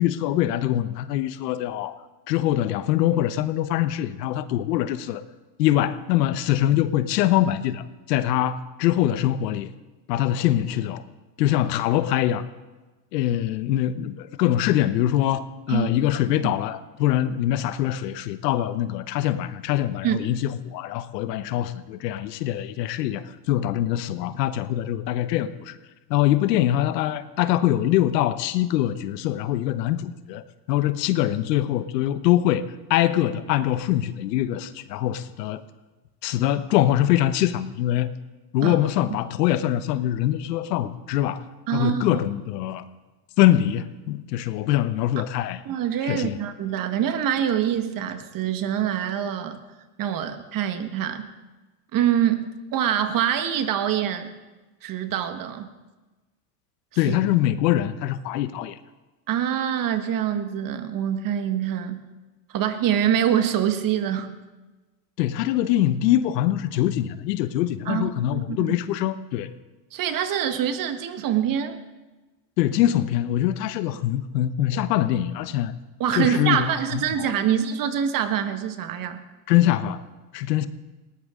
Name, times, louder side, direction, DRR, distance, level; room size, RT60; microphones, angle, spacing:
voice 1, 0.0-1.9 2.3-5.2 5.6-9.7 10.1-11.0 11.4-12.4 13.1-25.8 26.1-30.4 30.7-32.6 32.9-35.6 36.2-38.1 38.5-41.4 41.7-42.8 43.4-45.6 46.1-46.4 57.0-58.8 65.2-69.5 72.6-75.7 76.2-76.7 77.2-77.3 79.5-80.0 80.3-80.7, left 13 dB, 80° left, 13 dB, 1.1 m, -23 dB
voice 2, 41.7-42.2 45.6-49.6 50.0-51.3 51.9-54.3 54.8-55.7 57.1-57.2 59.3-62.0 62.5-64.3 67.8-68.8 69.9-71.8 76.0-79.2, right 9 dB, 45° right, 9 dB, 1.6 m, -25 dB
19.5 x 18.0 x 3.8 m, 1.2 s
supercardioid pair, 110°, 48 cm